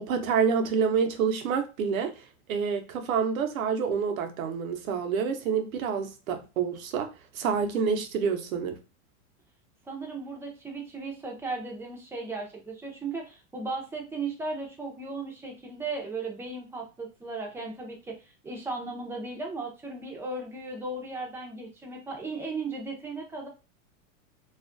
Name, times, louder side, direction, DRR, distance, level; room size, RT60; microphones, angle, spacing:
voice 1, 0.0-7.1 7.3-8.8, right 6 dB, 85° right, 0.7 m, -28 dB
voice 2, 9.9-18.2 18.4-23.5, right 3 dB, 5° right, 0.4 m, -36 dB
2.4 x 2.1 x 2.4 m
hypercardioid pair, 115°, 40 cm